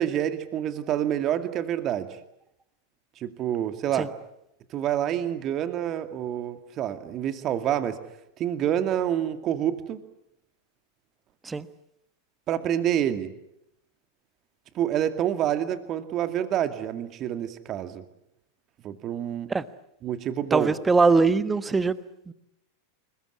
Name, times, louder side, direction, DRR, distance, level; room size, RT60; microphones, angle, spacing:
voice 1, 0.0-2.2 3.2-4.1 4.7-8.0 8.4-10.0 12.5-13.3 14.7-18.0 18.8-19.5 20.0-20.7, right 10 dB, 35° right, 2.3 m, -27 dB
voice 2, 20.5-22.3, right 4 dB, 15° right, 1.3 m, -22 dB
30.0 x 21.5 x 8.5 m
figure-of-eight pair, 90°, 0 cm